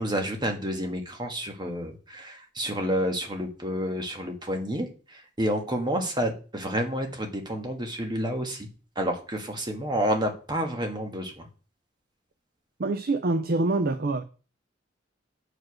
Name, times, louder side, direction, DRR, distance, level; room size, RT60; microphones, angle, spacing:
voice 1, 0.0-8.7 8.9-11.5, equal, 25° right, 1.5 m, -29 dB
voice 2, 12.8-14.2, right 2 dB, 55° right, 0.6 m, -25 dB
7.7 x 4.9 x 6.3 m
head